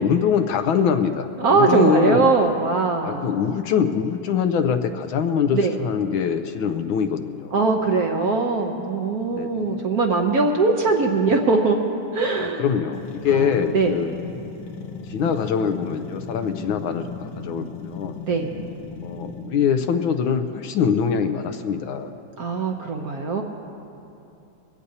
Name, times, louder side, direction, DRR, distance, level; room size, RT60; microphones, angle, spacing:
voice 1, 0.0-2.3 3.0-7.6 9.4-9.8 12.4-14.1 15.1-18.2 19.0-22.1, left 7 dB, 75° left, 8 dB, 1.4 m, -23 dB
voice 2, 1.4-3.3 5.5-5.8 7.5-11.8 12.1-12.6 13.3-13.9 17.4-17.6 18.2-18.5 22.4-23.4, right 4 dB, 60° right, 2 dB, 1.1 m, -21 dB
sound 1, 12.9-19.7, left 4 dB, 60° left, 1.6 m, -36 dB
23.0 x 16.5 x 2.8 m, 2.7 s
omnidirectional pair, 2.4 m